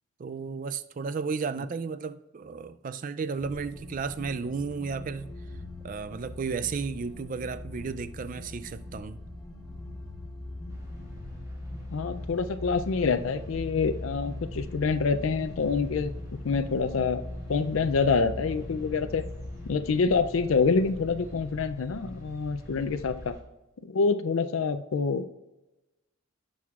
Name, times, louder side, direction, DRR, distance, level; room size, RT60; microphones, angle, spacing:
voice 1, 0.2-5.3 5.8-9.2, right 5 dB, 40° right, 0.3 m, -33 dB
sound 1, 3.4-19.7, left 1 dB, 5° left, 1.4 m, -41 dB
sound 2, 10.7-23.4, equal, 15° right, 1.8 m, -44 dB
voice 2, 11.9-16.1 16.4-17.2 17.5-19.2 19.7-23.3 23.9-25.3, left 4 dB, 75° left, 0.4 m, -26 dB
16.5 x 6.2 x 2.4 m
head